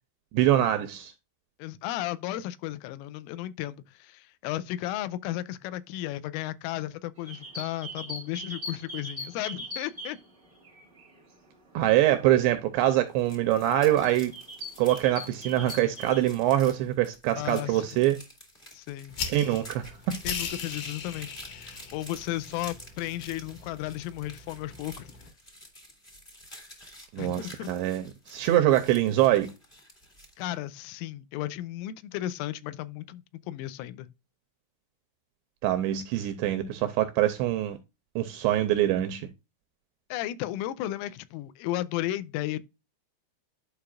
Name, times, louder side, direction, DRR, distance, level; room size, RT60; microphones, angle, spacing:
voice 1, 0.3-1.1 11.7-14.3 14.8-18.2 19.3-20.1 27.1-29.5 35.6-37.8 38.2-39.3, right 13 dB, 85° right, 2.6 m, -24 dB
voice 2, 1.6-10.2 17.4-17.9 18.7-19.2 20.2-25.1 27.2-27.8 30.4-34.1 40.1-42.6, left 14 dB, 85° left, 3.2 m, -34 dB
sound 1, 7.2-11.2 11.7-11.9 12.9-13.0 13.5-13.7 14.0-16.2, left 1 dB, 50° right, 0.8 m, -40 dB
sound 2, 13.1-30.4, equal, 30° left, 0.9 m, -49 dB
sound 3, 19.1-25.3, left 6 dB, 55° left, 2.5 m, -39 dB
11.5 x 4.8 x 2.4 m
omnidirectional pair, 5.7 m